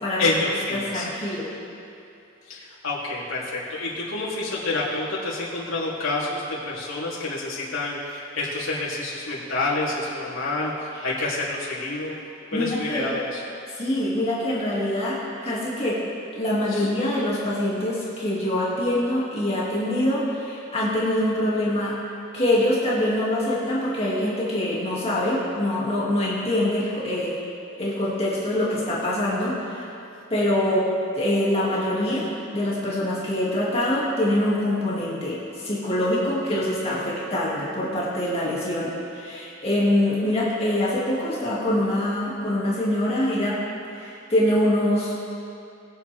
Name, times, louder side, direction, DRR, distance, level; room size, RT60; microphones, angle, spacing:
voice 1, 0.2-1.1 2.5-12.1 12.5-13.4 16.7-16.9, left 2 dB, 80° left, -8 dB, 3.3 m, -28 dB
voice 2, 0.7-1.5 12.5-13.1 13.7-16.0 16.4-22.0 22.3-27.4 27.8-29.8 30.3-35.4 35.6-43.6 44.0-45.1, left 1 dB, 30° left, -7 dB, 2.3 m, -24 dB
21.0 x 8.6 x 3.5 m, 2.7 s
head